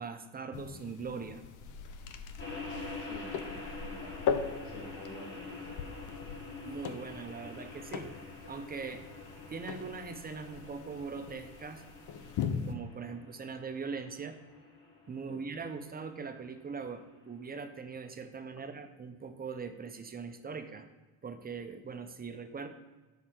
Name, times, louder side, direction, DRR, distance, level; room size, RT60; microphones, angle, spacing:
voice 1, 0.0-1.4 6.6-8.1 8.5-9.0 9.5-11.8 12.7-14.4 15.1-20.9 21.2-22.7, right 5 dB, 25° right, 8 dB, 0.7 m, -41 dB
sound 1, 0.5-12.7, left 7 dB, 55° left, 0.7 m, -40 dB
sound 2, 2.4-17.7, left 3 dB, 30° left, 2.5 m, -47 dB
voice 2, 3.0-5.8 15.3-15.7, left 3 dB, 80° left, 3 dB, 1.5 m, -50 dB
6.5 x 5.7 x 4.4 m, 1.2 s
supercardioid pair, 90°, 38 cm